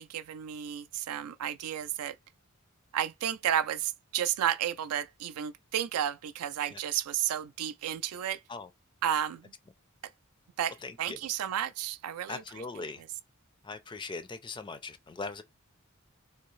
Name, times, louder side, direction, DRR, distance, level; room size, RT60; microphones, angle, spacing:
voice 1, 0.0-2.2 2.9-8.4 9.0-9.5 10.6-12.6 13.0-13.1, right 10 dB, 80° right, 0.4 m, -32 dB
voice 2, 10.8-11.2 12.3-13.0 13.6-15.4, left 3 dB, 20° left, 0.4 m, -40 dB
3.4 x 2.7 x 3.1 m
head